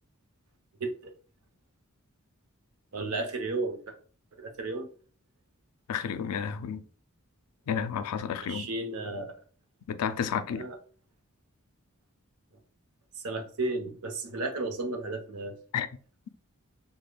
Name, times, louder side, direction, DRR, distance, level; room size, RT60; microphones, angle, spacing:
voice 1, 0.8-1.1 2.9-3.9 4.4-4.9 8.5-9.3 10.5-10.8 13.1-15.6, right 2 dB, 70° right, 0.7 m, -33 dB
voice 2, 5.9-6.8 7.7-8.7 9.9-10.7 15.7-15.9, left 7 dB, 85° left, 0.4 m, -31 dB
5.1 x 2.1 x 2.2 m
head